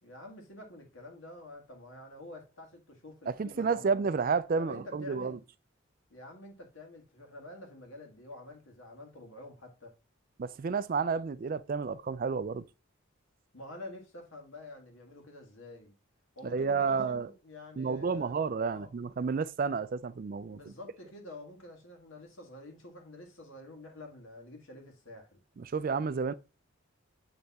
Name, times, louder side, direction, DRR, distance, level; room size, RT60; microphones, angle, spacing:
voice 1, 0.0-3.9 4.6-5.4 6.1-9.9 13.5-15.9 16.4-18.9 20.5-25.4, left 1 dB, 75° left, 1.9 m, -48 dB
voice 2, 3.3-5.4 10.4-12.6 16.4-17.3 17.8-20.6 25.6-26.3, right 5 dB, 40° right, 0.3 m, -31 dB
8.1 x 3.4 x 4.1 m
head